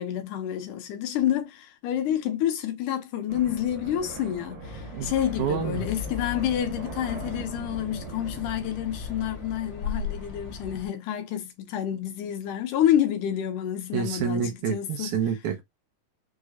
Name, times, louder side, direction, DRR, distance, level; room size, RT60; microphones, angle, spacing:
voice 1, 0.0-15.1, left 10 dB, 75° left, 2.3 m, -28 dB
sound 1, 3.3-10.7, right 4 dB, 90° right, 3.3 m, -42 dB
sound 2, 4.6-10.9, left 6 dB, 45° left, 2.1 m, -37 dB
voice 2, 5.4-5.8 13.9-15.6, right 7 dB, 75° right, 2.2 m, -28 dB
6.4 x 3.0 x 2.3 m
omnidirectional pair, 3.8 m